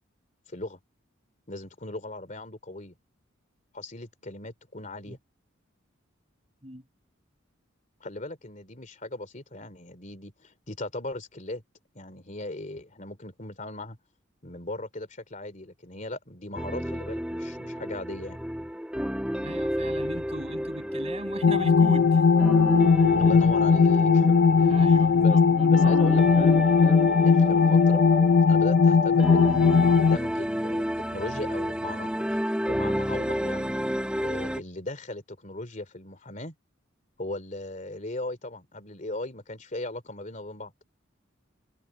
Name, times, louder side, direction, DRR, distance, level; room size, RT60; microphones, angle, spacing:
voice 1, 0.5-0.8 1.5-3.0 3.7-5.2 8.0-11.6 11.9-14.0 14.4-18.4 23.2-24.4 25.2-25.4 25.7-28.1 28.5-29.6 29.9-33.7 34.2-36.5 37.2-40.7, left 2 dB, 40° left, 2.9 m, -38 dB
sound 1, 16.6-34.6, equal, 5° right, 1.4 m, -31 dB
voice 2, 19.4-22.2 24.6-25.9, right 1 dB, 30° right, 7.4 m, -38 dB
sound 2, 21.4-30.2, left 5 dB, 65° left, 0.5 m, -19 dB
head